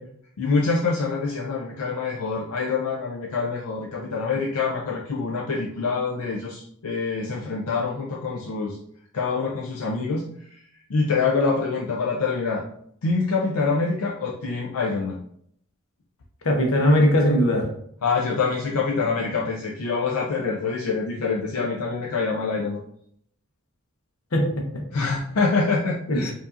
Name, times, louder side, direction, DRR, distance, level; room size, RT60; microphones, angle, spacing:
voice 1, 0.4-8.8 9.1-10.2 10.9-12.6 13.0-15.2 18.0-22.8 24.9-26.3, left 4 dB, 80° left, -2 dB, 0.5 m, -25 dB
voice 2, 16.4-17.7 24.3-24.6 26.1-26.3, equal, 65° left, 1 dB, 0.8 m, -19 dB
4.7 x 2.6 x 2.5 m, 0.67 s
head